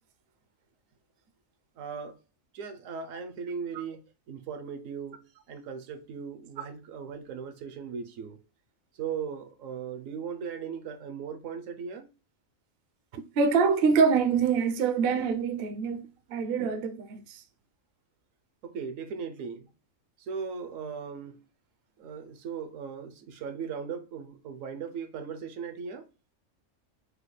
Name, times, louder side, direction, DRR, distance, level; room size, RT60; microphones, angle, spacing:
voice 1, 1.8-2.2 2.5-5.2 5.5-8.4 8.9-12.1 18.6-19.7 20.2-21.4 22.0-26.0, right 6 dB, 75° right, 1.0 m, -38 dB
voice 2, 13.1-16.0 16.3-17.4, right 5 dB, 60° right, 0.7 m, -25 dB
5.0 x 2.2 x 3.1 m
omnidirectional pair, 1.4 m